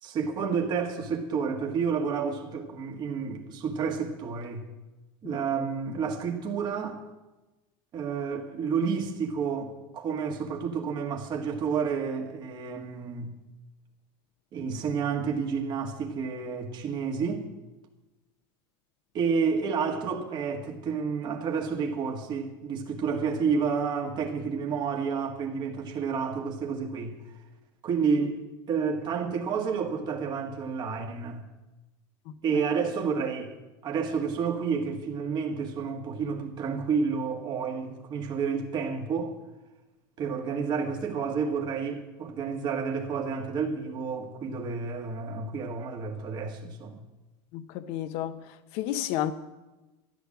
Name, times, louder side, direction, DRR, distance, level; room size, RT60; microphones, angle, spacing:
voice 1, 0.0-4.6 5.2-7.0 7.9-13.3 14.5-17.5 19.1-27.2 27.8-28.4 28.7-31.4 32.4-33.6 33.8-39.4 40.2-47.0, right 5 dB, 40° right, 1.9 m, -30 dB
voice 2, 47.5-48.4 48.7-49.3, left 12 dB, 60° left, 1.1 m, -31 dB
13.5 x 10.5 x 7.3 m
supercardioid pair, 125°, 12 cm